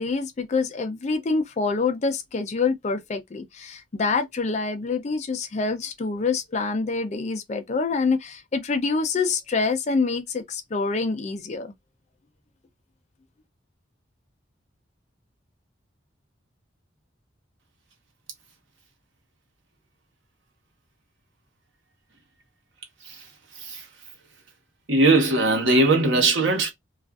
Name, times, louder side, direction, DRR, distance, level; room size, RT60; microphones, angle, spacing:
voice 1, 0.0-11.7, left 4 dB, 35° left, 0.4 m, -26 dB
voice 2, 23.5-23.9 24.9-26.7, right 2 dB, 75° right, 1.0 m, -20 dB
2.4 x 2.4 x 2.3 m
head